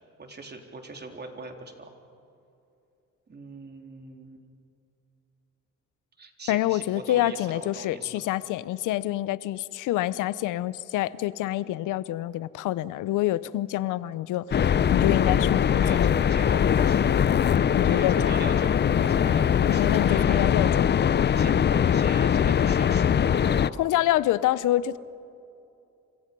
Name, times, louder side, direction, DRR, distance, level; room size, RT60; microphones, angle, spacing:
voice 1, 0.2-1.9 3.3-4.5 6.2-8.3 15.7-20.9 21.2-24.0, right 3 dB, 35° right, 3 dB, 3.7 m, -41 dB
voice 2, 6.5-16.2 17.7-18.5 19.7-20.9 23.8-25.0, left 14 dB, 90° left, 18 dB, 0.7 m, -27 dB
sound 1, 14.5-23.7, left 8 dB, 35° left, 0.5 m, -22 dB
30.0 x 26.0 x 5.4 m, 2.6 s
cardioid pair, 90°, 30 cm